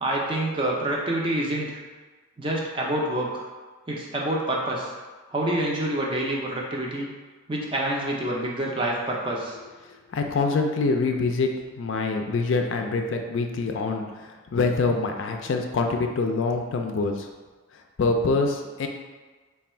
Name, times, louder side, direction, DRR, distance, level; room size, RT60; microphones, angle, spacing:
voice 1, 0.0-1.8 2.4-3.4 3.9-4.9 5.3-7.1 7.5-9.6, right 1 dB, 25° right, -2 dB, 0.5 m, -27 dB
voice 2, 10.1-11.5 11.8-14.0 14.5-17.3 18.0-18.9, left 3 dB, 60° left, 3 dB, 0.4 m, -25 dB
3.3 x 2.3 x 4.3 m, 1.3 s
head